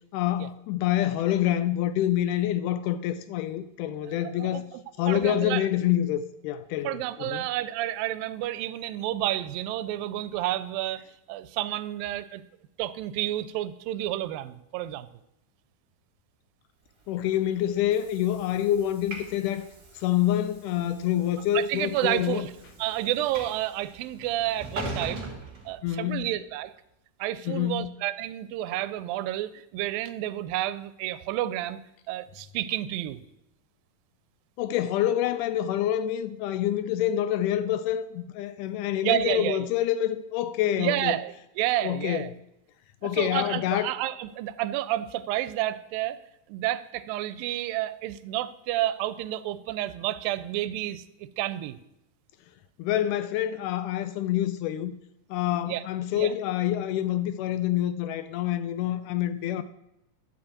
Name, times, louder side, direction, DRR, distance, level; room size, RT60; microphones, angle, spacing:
voice 1, 0.1-4.7 5.0-7.5 17.1-19.7 19.9-22.5 25.8-26.3 27.5-27.9 34.6-41.1 41.8-42.3 43.0-43.9 52.8-54.9 55.3-59.6, left 12 dB, 80° left, 1.9 m, -27 dB
voice 2, 4.2-5.6 6.8-12.4 12.8-15.1 21.5-22.5 22.8-25.3 25.7-26.7 27.2-31.8 32.1-33.2 39.0-39.7 40.8-42.3 43.0-46.2 46.5-51.8 55.7-55.8 56.2-56.3, right 14 dB, 90° right, 2.3 m, -30 dB
Train / Sliding door, 17.0-26.3, right 2 dB, 30° right, 2.0 m, -42 dB
12.0 x 5.2 x 8.4 m
omnidirectional pair, 4.0 m